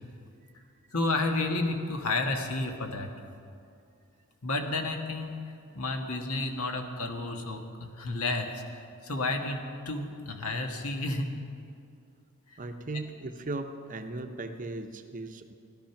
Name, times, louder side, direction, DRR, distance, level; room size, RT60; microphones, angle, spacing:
voice 1, 0.9-3.1 4.4-5.4 5.7-8.6 9.0-11.3, left 2 dB, 75° left, 3 dB, 1.6 m, -31 dB
voice 2, 12.6-15.5, right 2 dB, 35° right, 7 dB, 0.8 m, -37 dB
17.0 x 12.5 x 5.9 m, 2.5 s
head